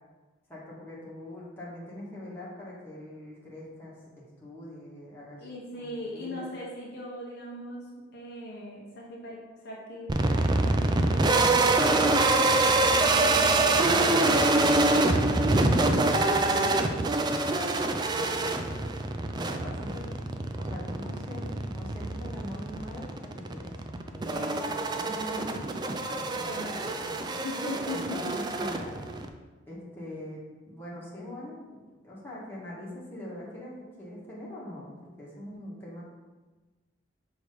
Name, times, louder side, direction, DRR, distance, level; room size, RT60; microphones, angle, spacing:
voice 1, 0.5-5.5 5.7-6.5 18.0-20.1 20.6-23.7 24.1-25.7 26.1-27.3 27.9-29.0 29.7-36.0, left 1 dB, 10° left, -7 dB, 1.6 m, -43 dB
voice 2, 5.4-7.9 8.1-9.4 9.6-17.1 24.3-25.1 26.5-27.0 27.4-28.4, left 1 dB, 55° left, -4 dB, 1.2 m, -40 dB
sound 1, 10.1-29.3, right 2 dB, 20° right, 0.3 m, -25 dB
6.3 x 3.1 x 5.1 m, 1.3 s
head